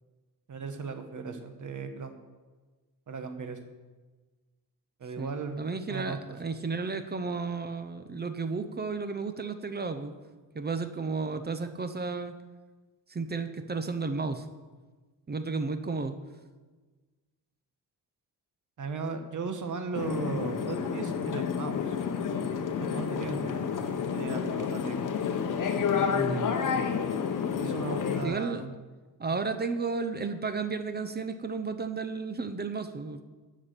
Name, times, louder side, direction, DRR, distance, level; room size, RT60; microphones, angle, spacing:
voice 1, 0.5-2.1 3.1-3.6 5.0-5.6 5.9-6.4 18.8-21.9 22.8-23.5 24.1-25.0 27.6-28.7, right 4 dB, 50° right, 7 dB, 1.3 m, -36 dB
voice 2, 5.2-10.1 10.5-12.4 13.1-14.5 15.3-16.2 26.1-26.6 28.2-28.7 29.2-33.2, right 4 dB, 25° right, 9 dB, 0.7 m, -33 dB
sound 1, 19.9-28.2, left 6 dB, 55° left, 1.1 m, -30 dB
11.5 x 7.3 x 6.7 m, 1.3 s
wide cardioid pair, 145°, 38 cm